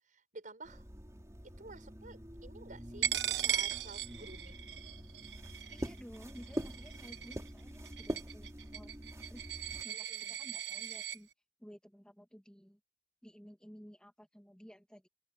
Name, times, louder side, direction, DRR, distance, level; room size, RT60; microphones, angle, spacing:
voice 1, 0.1-0.8 1.6-4.7 9.9-10.4, right 3 dB, 50° right, 6.7 m, -52 dB
sound 1, 0.6-9.8, equal, 20° right, 3.3 m, -45 dB
Coin (dropping), 3.0-11.2, right 10 dB, 75° right, 1.3 m, -38 dB
voice 2, 5.7-8.9 9.3-9.4 9.8-11.3 11.6-12.8 13.2-15.1, equal, 5° left, 2.2 m, -54 dB
open air
head